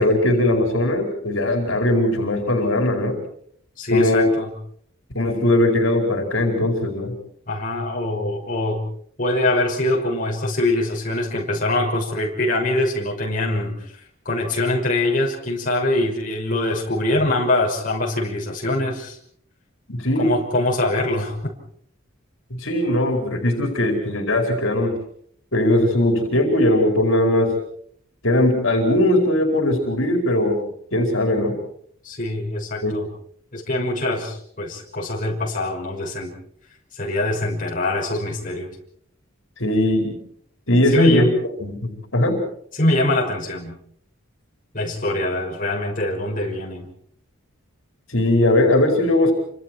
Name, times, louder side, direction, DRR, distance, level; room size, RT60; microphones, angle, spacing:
voice 1, 0.0-3.2 3.9-4.3 5.1-7.1 19.9-20.3 22.5-25.0 25.5-27.5 28.2-30.6 30.9-31.6 32.8-33.0 39.6-40.2 40.7-41.3 41.6-42.4 48.1-49.3, left 1 dB, 75° left, 3 dB, 4.9 m, -19 dB
voice 2, 3.8-4.5 7.5-8.8 9.2-19.2 20.2-21.5 32.0-33.1 33.5-36.3 36.9-38.7 40.9-41.3 42.7-43.8 44.7-46.9, left 1 dB, 40° left, -2 dB, 6.1 m, -23 dB
29.0 x 26.0 x 4.6 m, 0.63 s
head